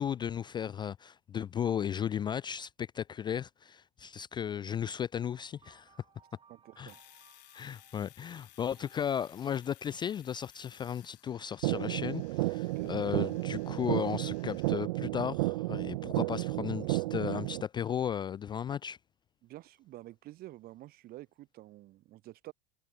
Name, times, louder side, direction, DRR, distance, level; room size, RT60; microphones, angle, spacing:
voice 1, 0.0-5.9 6.8-6.9 7.5-19.0, left 8 dB, 20° left, 0.3 m, -35 dB
sound 1, 5.3-9.7, right 6 dB, 25° right, 3.5 m, -64 dB
voice 2, 6.5-7.0 12.6-12.9 19.4-22.5, right 16 dB, 45° right, 1.4 m, -49 dB
Domestic sounds home sounds, 6.9-14.7, left 19 dB, 75° left, 1.8 m, -59 dB
sound 2, 11.6-17.6, right 20 dB, 80° right, 0.4 m, -32 dB
supercardioid pair, 105°, 21 cm